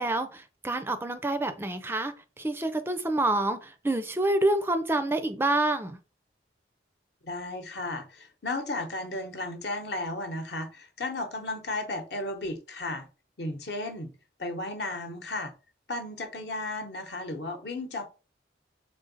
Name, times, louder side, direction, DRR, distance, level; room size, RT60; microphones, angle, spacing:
voice 1, 0.0-6.0, right 2 dB, 15° right, 0.4 m, -27 dB
voice 2, 7.2-13.1 13.4-14.1 14.4-15.5 15.9-18.1, left 2 dB, 65° left, 0.9 m, -34 dB
3.7 x 3.6 x 3.9 m
head